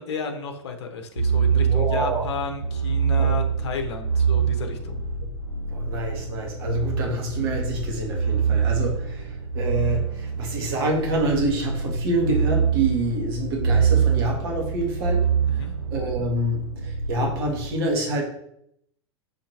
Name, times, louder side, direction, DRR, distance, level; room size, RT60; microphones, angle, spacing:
voice 1, 0.0-5.0 15.5-15.7, left 5 dB, 60° left, 5 dB, 0.7 m, -32 dB
sound 1, 1.2-17.7, right 6 dB, 90° right, 0.9 m, -25 dB
voice 2, 1.5-2.2 3.2-3.3 5.7-15.2 15.5-15.6 15.9-18.2, right 1 dB, 55° right, 0 dB, 1.3 m, -27 dB
6.4 x 2.8 x 2.8 m, 0.73 s
figure-of-eight pair, 90°, 15 cm